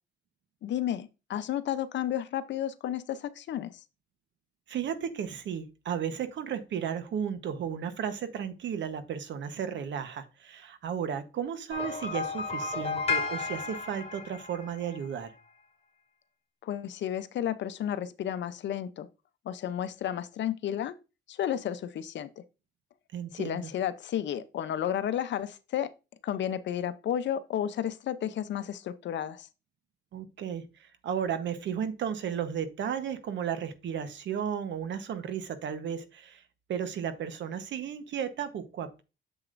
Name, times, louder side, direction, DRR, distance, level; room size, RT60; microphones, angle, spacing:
voice 1, 0.6-3.7 16.6-19.1 19.5-20.9 21.3-22.4 23.3-25.9 26.2-29.5, left 10 dB, 65° left, 0.7 m, -32 dB
voice 2, 4.7-15.3 23.1-23.7 30.1-36.4 36.7-39.0, right 8 dB, 70° right, 1.1 m, -34 dB
sound 1, 11.7-15.1, left 4 dB, 30° left, 2.2 m, -33 dB
7.6 x 7.2 x 2.6 m
cardioid pair, 90°, 20 cm